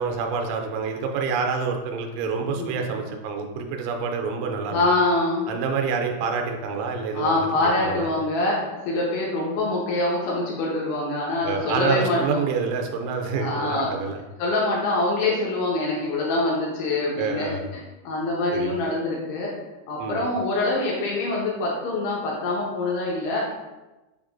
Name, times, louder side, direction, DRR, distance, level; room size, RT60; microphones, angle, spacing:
voice 1, 0.0-4.8 5.5-7.4 7.8-8.1 11.4-14.2 17.2-17.7 18.5-18.7 20.0-20.2, right 5 dB, 85° right, 3 dB, 2.7 m, -27 dB
voice 2, 4.7-5.5 7.1-8.6 8.9-12.2 13.4-13.9 14.4-19.5 19.9-23.4, left 2 dB, 80° left, -4 dB, 2.7 m, -25 dB
7.1 x 2.9 x 2.4 m, 1.1 s
omnidirectional pair, 4.8 m